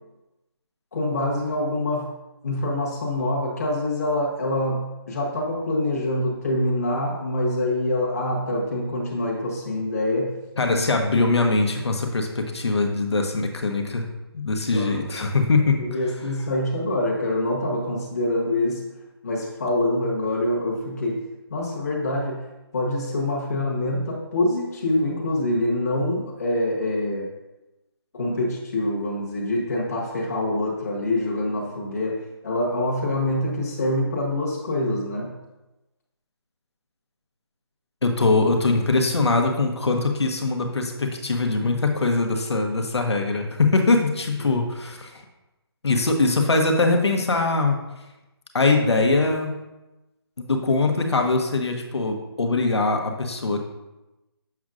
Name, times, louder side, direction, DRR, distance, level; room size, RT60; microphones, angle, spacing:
voice 1, 0.9-2.1 2.4-10.3 10.7-10.8 14.7-15.2 15.8-18.8 19.2-21.2 21.5-22.4 22.7-27.3 28.1-35.3 44.4-44.5, left 1 dB, 35° left, -3 dB, 1.3 m, -25 dB
voice 2, 10.6-14.1 14.3-15.8 38.0-45.2 45.8-47.8 48.5-49.6 50.4-53.6, left 3 dB, 85° left, 3 dB, 1.2 m, -22 dB
7.0 x 6.2 x 2.5 m, 1.0 s
hypercardioid pair, 175°, 14 cm